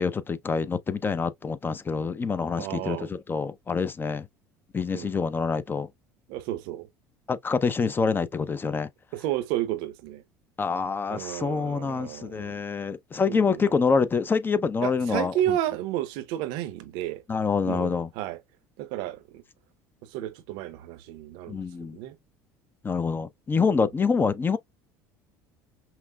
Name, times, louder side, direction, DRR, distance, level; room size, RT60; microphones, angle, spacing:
voice 1, 0.0-4.3 4.7-5.9 7.3-8.9 10.6-15.3 17.3-18.1 21.5-22.0 22.8-24.6, left 5 dB, 25° left, 0.5 m, -26 dB
voice 2, 2.6-3.1 4.9-5.1 6.3-6.9 9.1-10.2 11.1-12.6 13.3-13.7 14.8-17.2 17.6-18.4 18.8-19.4 20.0-22.2, right 13 dB, 70° right, 0.6 m, -32 dB
5.6 x 2.0 x 2.2 m
supercardioid pair, 85°, 9 cm